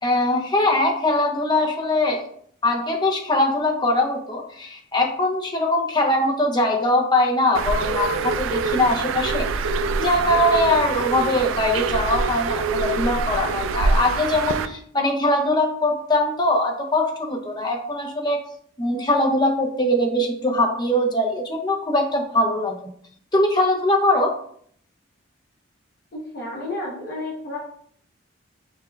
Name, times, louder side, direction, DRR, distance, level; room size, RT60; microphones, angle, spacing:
voice 1, 0.0-2.3 2.6-9.5 10.0-18.4 18.8-22.9 23.3-24.3, left 1 dB, 20° left, 2 dB, 0.6 m, -21 dB
Bird, 7.5-14.7, right 4 dB, 90° right, 0.3 m, -25 dB
voice 2, 26.1-27.6, left 2 dB, 55° left, -2 dB, 0.8 m, -31 dB
5.9 x 3.5 x 2.3 m, 0.62 s
head